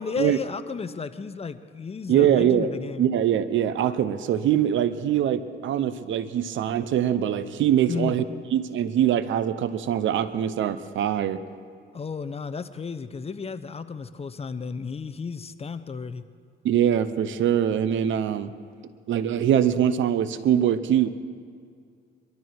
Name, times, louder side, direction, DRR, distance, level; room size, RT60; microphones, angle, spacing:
voice 1, 0.0-3.1 7.9-8.2 11.9-16.2, left 5 dB, 30° left, 11 dB, 0.8 m, -33 dB
voice 2, 2.1-2.7 3.0-8.2 8.5-11.4 16.6-18.5 19.1-21.1, right 10 dB, 75° right, 13 dB, 0.9 m, -23 dB
23.0 x 12.5 x 4.7 m, 2.2 s
cardioid pair, 90°, 20 cm